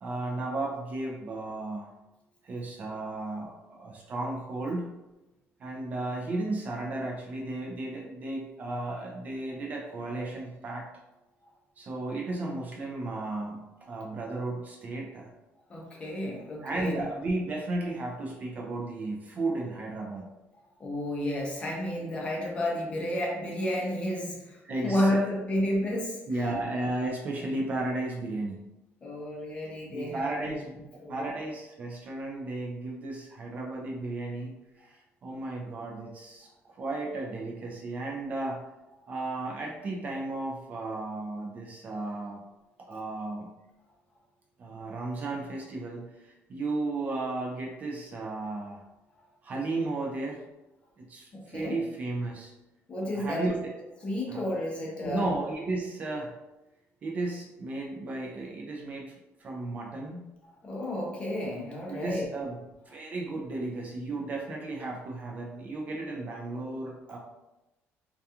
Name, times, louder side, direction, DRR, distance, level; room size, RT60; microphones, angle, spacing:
voice 1, 0.0-1.9 2.4-4.9 5.6-10.9 11.8-15.3 16.6-20.3 24.6-25.2 26.3-28.7 29.9-34.6 34.9-38.6 39.1-42.4 42.8-43.6 44.6-48.8 49.4-50.4 51.0-52.5 53.1-53.7 54.3-54.4 55.0-56.4 57.0-59.1 59.4-60.3 61.9-62.6 62.9-67.2, right 2 dB, 30° right, 0 dB, 0.3 m, -34 dB
voice 2, 15.7-17.0 20.8-26.6 29.0-30.5 31.0-31.3 51.3-51.8 52.9-53.5 54.0-55.3 60.6-62.3, left 1 dB, 20° left, -2 dB, 0.6 m, -31 dB
2.3 x 2.3 x 2.7 m, 0.98 s
cardioid pair, 170°, 5 cm